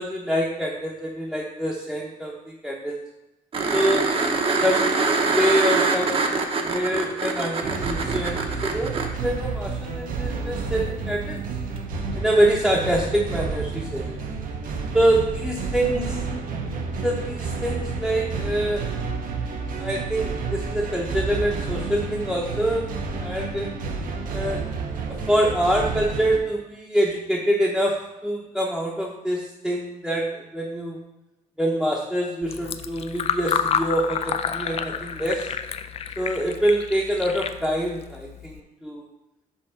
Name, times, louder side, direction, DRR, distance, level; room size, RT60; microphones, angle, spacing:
voice 1, 0.0-3.0 3.7-4.1 4.6-11.5 12.2-14.2 14.9-16.2 17.0-18.9 19.8-22.9 23.2-23.7 24.3-24.6 25.3-27.9 28.2-31.0 31.6-35.5 36.2-39.0, right 1 dB, ahead, -5 dB, 0.8 m, -25 dB
sound 1, 3.5-9.1 11.8-11.9, right 4 dB, 40° right, 0.8 m, -24 dB
sound 2, 7.6-26.4, right 4 dB, 70° right, 0.8 m, -30 dB
Fill (with liquid), 32.4-38.6, left 8 dB, 45° left, 0.4 m, -29 dB
5.4 x 3.7 x 5.8 m, 0.92 s
cardioid pair, 140°, 15 cm